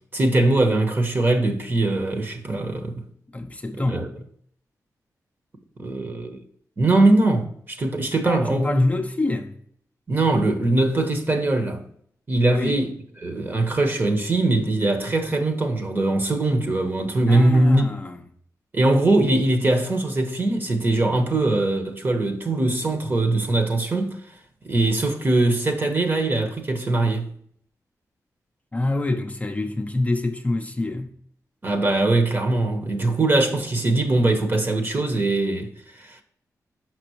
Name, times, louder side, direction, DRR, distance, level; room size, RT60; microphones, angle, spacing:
voice 1, 0.1-2.9 3.7-4.1 5.8-6.4 6.8-8.8 10.1-11.8 12.3-12.9 13.2-17.8 18.7-24.2 24.6-27.3 31.6-35.7 36.0-36.2, right 2 dB, 35° right, 1.1 m, -21 dB
voice 2, 3.3-4.3 8.2-9.5 12.5-12.8 17.3-18.2 28.7-31.1, left 2 dB, 25° left, 0.6 m, -26 dB
6.0 x 5.9 x 3.0 m
wide cardioid pair, 95°, 6 cm